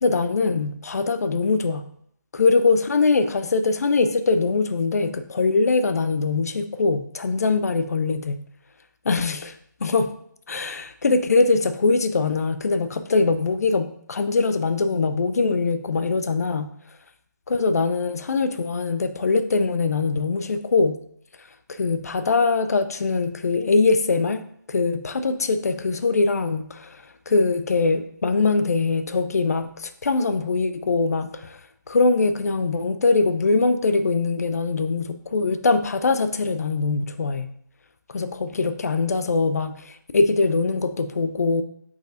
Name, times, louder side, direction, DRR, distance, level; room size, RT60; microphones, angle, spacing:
voice 1, 0.0-1.8 2.3-8.4 9.1-9.6 9.8-10.1 10.5-16.7 17.5-21.0 21.7-27.0 27.3-31.6 31.9-37.5 38.1-41.6, left 3 dB, 50° left, 11 dB, 0.4 m, -22 dB
4.9 x 4.1 x 2.5 m, 0.70 s
hypercardioid pair, 170°, 10 cm